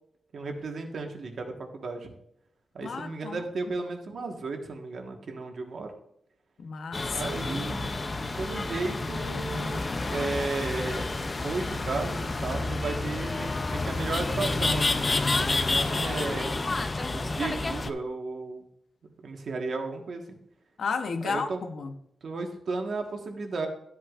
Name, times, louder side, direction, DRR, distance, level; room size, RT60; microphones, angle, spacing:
voice 1, 0.3-2.1 2.7-5.9 7.1-7.9 8.4-11.2 11.4-16.5 17.1-18.6 19.2-20.4 21.2-21.6 22.2-23.7, right 3 dB, 55° right, 1.3 m, -34 dB
voice 2, 2.8-3.4 6.6-7.4 20.8-21.9, left 5 dB, 60° left, 0.8 m, -33 dB
sound 1, 6.9-17.9, left 3 dB, 25° left, 0.4 m, -29 dB
12.5 x 8.0 x 2.4 m
wide cardioid pair, 170°, 0 cm